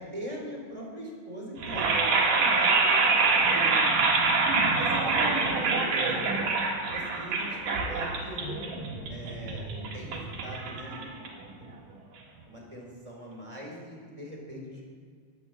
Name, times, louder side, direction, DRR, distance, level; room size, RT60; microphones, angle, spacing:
voice 1, 0.0-2.8 3.5-4.0 4.8-6.2 6.9-8.7 9.1-9.7 9.9-11.2 11.6-11.8 12.5-14.8, equal, 10° right, -2 dB, 3.2 m, -41 dB
sound 1, 1.6-11.6, right 4 dB, 80° right, 3.4 m, -26 dB
12.0 x 9.1 x 7.5 m, 2.1 s
omnidirectional pair, 3.6 m